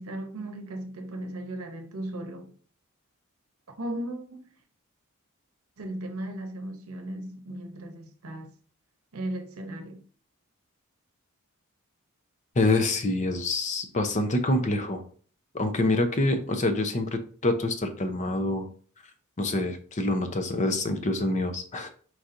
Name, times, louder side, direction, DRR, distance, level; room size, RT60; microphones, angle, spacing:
voice 1, 0.0-2.5 3.8-4.5 5.8-8.5 9.1-10.0, right 1 dB, 75° right, 0.8 m, -36 dB
voice 2, 12.6-15.0 15.5-18.7 19.4-21.9, left 2 dB, 35° left, 0.6 m, -26 dB
4.6 x 4.1 x 2.6 m
head